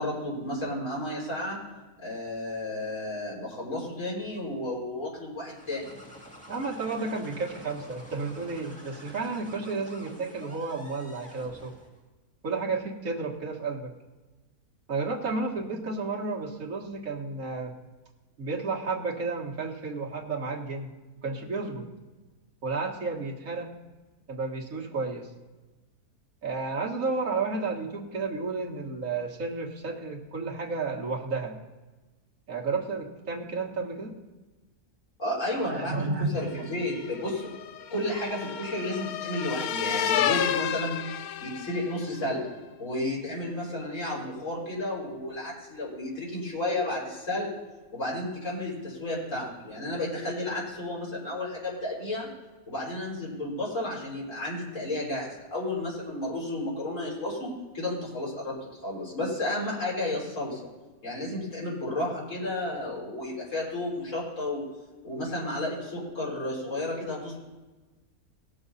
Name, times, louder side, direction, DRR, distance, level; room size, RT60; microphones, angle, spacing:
voice 1, 0.0-1.6 2.0-5.9 35.2-37.5 37.9-41.0 41.4-42.4 42.8-47.5 47.9-52.3 52.7-58.6 58.8-60.6 61.0-64.6 65.0-67.4, left 1 dB, 55° left, -6 dB, 4.3 m, -32 dB
sound 1, 5.4-12.0, equal, 5° left, 1.9 m, -48 dB
voice 2, 6.5-11.7 12.4-13.9 14.9-17.7 18.4-20.9 21.2-21.9 22.6-23.7 24.3-25.3 26.4-31.6 32.5-34.1 35.5-36.3, right 4 dB, 60° right, -1 dB, 2.0 m, -32 dB
sound 2, 36.7-42.1, left 9 dB, 80° left, 1.1 m, -31 dB
18.5 x 7.1 x 4.0 m, 1.2 s
omnidirectional pair, 1.6 m